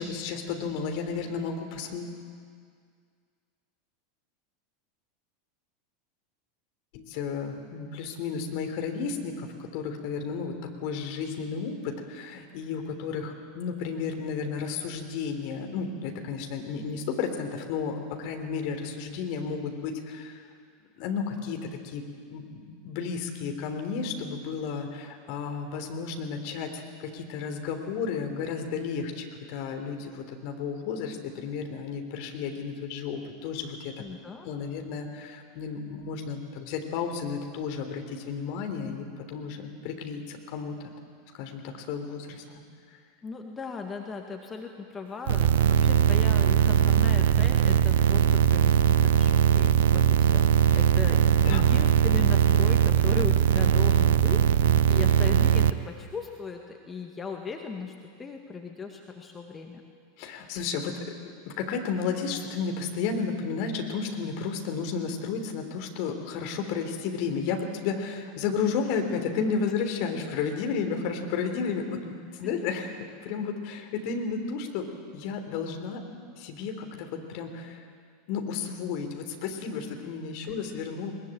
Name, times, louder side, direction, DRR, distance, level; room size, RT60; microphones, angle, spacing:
voice 1, 0.0-2.2 6.9-20.4 21.0-22.0 22.3-34.0 34.4-40.7 41.3-42.4 50.7-50.8 51.4-51.6 60.2-61.2 61.5-74.9 75.1-76.0 76.4-77.8 78.3-81.1, left 5 dB, 50° left, 4 dB, 3.4 m, -32 dB
voice 2, 34.0-34.5 43.2-57.9 58.2-59.8 72.4-72.6 80.4-80.6, left 5 dB, 20° left, 3 dB, 2.0 m, -38 dB
sound 1, 45.3-55.7, right 9 dB, 65° right, 0.7 m, -20 dB
21.5 x 21.0 x 8.8 m, 2.1 s
figure-of-eight pair, 85°, 0 cm